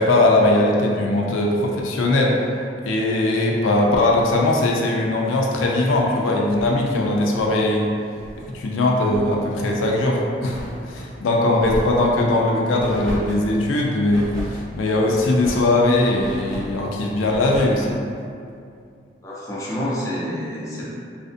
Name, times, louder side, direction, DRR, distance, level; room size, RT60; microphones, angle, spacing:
voice 1, 0.0-2.3 2.9-7.9 8.5-10.6 10.9-14.4 14.7-18.0, left 2 dB, 85° left, -1 dB, 0.4 m, -20 dB
sound 1, 6.4-8.5 8.8-9.4 9.8-11.1 11.5-12.2 12.8-13.5 14.1-14.6 15.1-15.7 16.1-16.8 17.2-17.8, equal, 75° right, 1.1 m, -35 dB
voice 2, 19.2-20.9, equal, 15° left, -7 dB, 0.4 m, -28 dB
2.5 x 2.4 x 2.4 m, 2.4 s
head